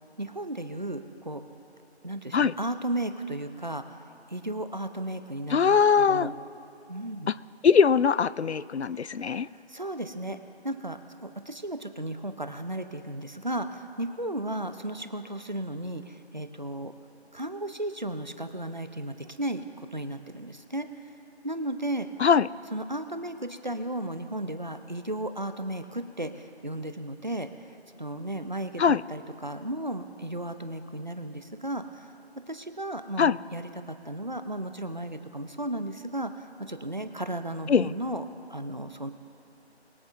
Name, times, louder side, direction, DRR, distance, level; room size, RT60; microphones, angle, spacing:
voice 1, 0.2-1.4 2.0-4.0 4.3-6.3 6.9-7.3 9.5-10.4 10.6-16.9 17.3-20.9 21.4-22.1 22.7-27.5 28.0-28.8 29.1-32.1 32.5-38.2 38.5-39.1, right 1 dB, 45° right, 9 dB, 0.7 m, -34 dB
voice 2, 5.5-6.3 7.6-9.5 22.2-22.5 28.8-29.0 33.2-33.4 37.7-37.9, left 6 dB, 75° left, 18 dB, 0.5 m, -21 dB
23.0 x 9.4 x 2.6 m, 2.7 s
figure-of-eight pair, 175°, 33 cm